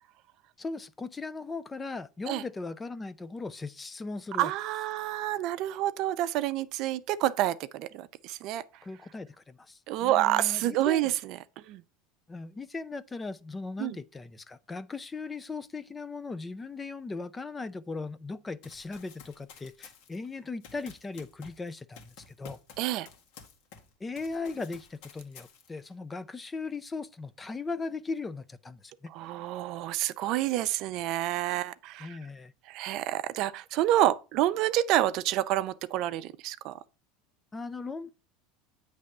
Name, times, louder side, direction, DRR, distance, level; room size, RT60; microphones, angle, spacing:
voice 1, 0.6-4.5 8.8-11.1 12.3-22.6 24.0-29.1 32.0-32.5 37.5-38.1, left 3 dB, 15° left, 0.5 m, -38 dB
voice 2, 4.4-8.6 9.9-11.1 11.7-11.8 13.8-14.0 22.8-23.1 29.1-32.2 32.7-36.7, right 14 dB, 55° right, 0.5 m, -28 dB
Run, 18.6-23.9 24.2-25.9, left 6 dB, 65° left, 1.8 m, -52 dB
8.4 x 3.4 x 6.4 m
supercardioid pair, 120°, 0 cm